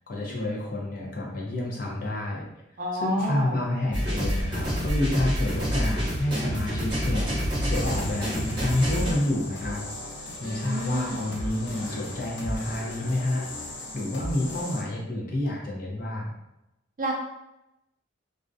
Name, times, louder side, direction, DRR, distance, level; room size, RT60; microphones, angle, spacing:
voice 1, 0.1-2.5 2.9-9.8 10.4-13.4 13.9-16.3, left 1 dB, 45° left, -2 dB, 0.5 m, -29 dB
voice 2, 2.8-3.6 10.4-11.3 17.0-17.1, right 1 dB, 45° right, -1 dB, 0.4 m, -30 dB
sound 1, 3.9-9.1, equal, 25° right, 0.8 m, -27 dB
sound 2, 7.7-14.8, left 1 dB, 80° left, 0.7 m, -37 dB
2.3 x 2.1 x 2.5 m, 0.91 s
head